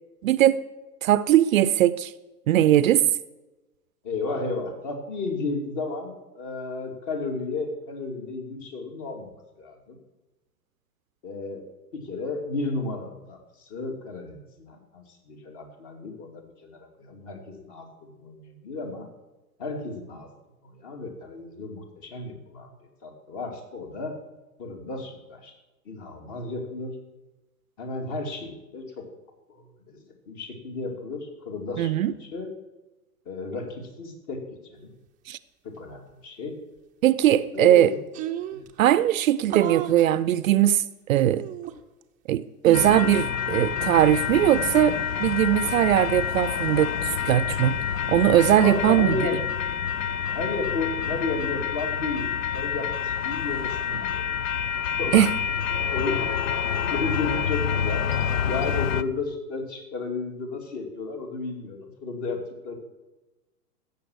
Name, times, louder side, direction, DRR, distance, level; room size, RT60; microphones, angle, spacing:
voice 1, 0.2-0.6 1.0-2.1 2.5-3.0 31.8-32.1 35.3-35.4 37.0-37.9 38.8-40.8 41.1-41.5 42.3-47.8 48.1-49.2 55.1-55.3, right 12 dB, 55° right, 16 dB, 0.6 m, -20 dB
voice 2, 4.0-10.0 11.2-11.7 11.9-19.1 19.6-20.3 20.6-22.7 23.0-24.1 24.6-25.5 25.8-26.9 27.8-29.0 29.5-31.9 32.2-32.5 33.3-34.9 35.6-36.6 37.5-38.0 38.5-38.7 48.6-49.4 50.3-54.4 55.0-55.3 55.9-56.3 56.7-58.1 58.4-62.7, left 3 dB, 35° left, 3 dB, 2.8 m, -33 dB
sound 1, 37.5-37.6 37.8-37.9 38.1-38.7 39.5-40.1 41.2-42.0 42.6-43.2, right 11 dB, 15° right, 0.6 m, -33 dB
sound 2, 42.7-59.0, left 8 dB, 55° left, 0.7 m, -28 dB
16.0 x 7.1 x 6.4 m, 1.1 s
hypercardioid pair, 115°, 48 cm